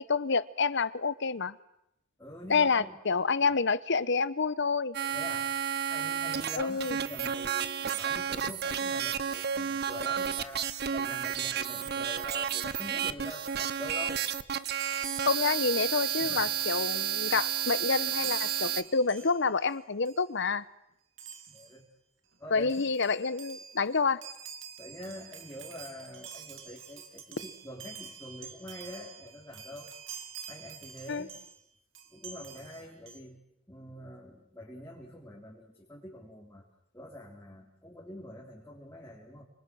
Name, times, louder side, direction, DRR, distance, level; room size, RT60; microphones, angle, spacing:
voice 1, 0.0-1.6 2.5-5.0 6.6-7.0 15.3-20.6 22.5-24.2 31.1-31.3, left 4 dB, 65° left, 1.0 m, -28 dB
voice 2, 2.2-3.0 3.4-3.5 5.1-5.5 5.9-14.3 16.2-16.5 21.5-21.9 22.4-22.9 24.8-29.9 30.5-31.4 32.1-33.4 33.7-36.6 36.9-39.4, left 1 dB, 15° left, 3.9 m, -45 dB
sound 1, 4.9-18.8, right 8 dB, 55° right, 1.1 m, -32 dB
Chime, 14.8-19.7 20.0-20.3 21.2-21.8 22.3-22.4 22.6-31.6 31.9-33.2, right 7 dB, 75° right, 2.5 m, -47 dB
29.5 x 26.5 x 6.4 m
head